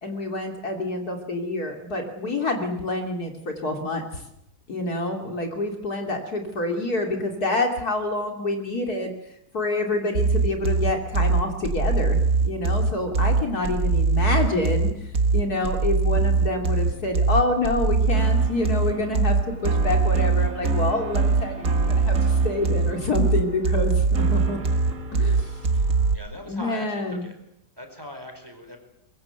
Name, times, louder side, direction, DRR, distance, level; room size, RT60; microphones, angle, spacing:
voice 1, 0.0-4.2 4.7-9.1 9.5-12.2 12.4-14.9 15.3-19.4 19.6-24.6 25.1-25.6 26.5-27.3, left 2 dB, 55° left, 3 dB, 3.4 m, -27 dB
sound 1, 10.1-26.1, right 4 dB, 50° right, 2.2 m, -22 dB
voice 2, 26.1-27.4 27.8-28.8, left 1 dB, 10° right, 5 dB, 4.7 m, -40 dB
23.5 x 22.5 x 8.0 m, 0.80 s
omnidirectional pair, 1.9 m